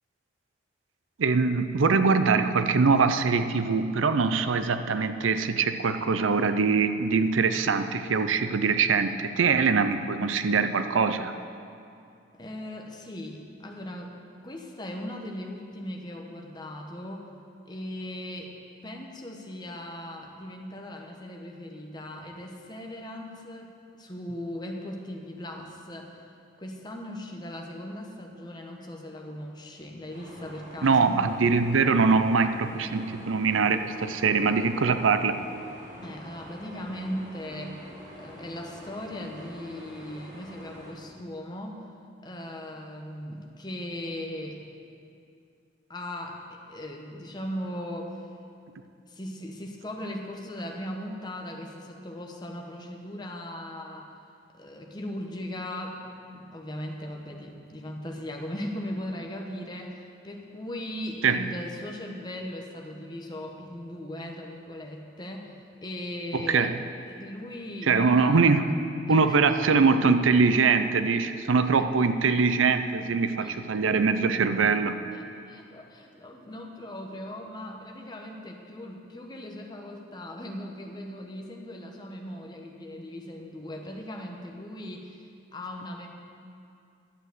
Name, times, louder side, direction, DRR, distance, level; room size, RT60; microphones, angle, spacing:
voice 1, 1.2-11.3 30.8-35.4 61.2-61.4 66.3-66.8 67.8-68.8 69.1-75.0, right 4 dB, 90° right, 10 dB, 0.6 m, -23 dB
voice 2, 12.4-14.1 14.4-17.3 17.7-18.5 18.8-26.3 26.6-31.3 36.0-37.8 38.1-41.9 42.2-44.6 45.9-48.3 49.1-54.1 54.5-66.7 67.1-68.5 69.1-69.4 71.7-71.8 73.4-73.6 75.1-85.3 85.5-86.1, left 1 dB, 20° left, 1 dB, 1.1 m, -38 dB
sound 1, 30.1-40.9, equal, 40° right, 2.5 m, -46 dB
11.5 x 7.9 x 7.7 m, 2.5 s
head